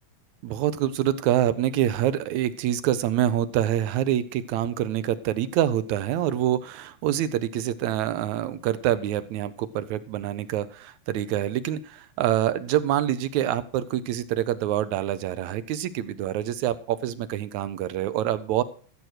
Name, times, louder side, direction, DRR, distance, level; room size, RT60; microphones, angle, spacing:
voice 1, 0.4-18.6, right 11 dB, 75° right, 14 dB, 2.1 m, -26 dB
14.0 x 7.8 x 6.5 m, 0.41 s
omnidirectional pair, 3.5 m